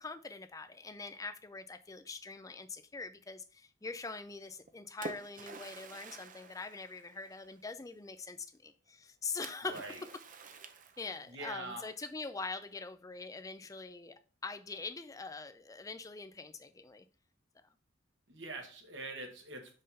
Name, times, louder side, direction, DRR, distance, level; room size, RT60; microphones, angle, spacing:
voice 1, 0.0-9.9 11.0-17.1, left 3 dB, 15° left, 0.4 m, -43 dB
Splash splatter, 4.5-7.6 9.4-11.4, right 3 dB, 40° right, 0.6 m, -49 dB
voice 2, 9.7-10.0 11.3-11.9 18.3-19.8, right 2 dB, 60° right, 1.3 m, -44 dB
5.4 x 3.7 x 5.4 m
head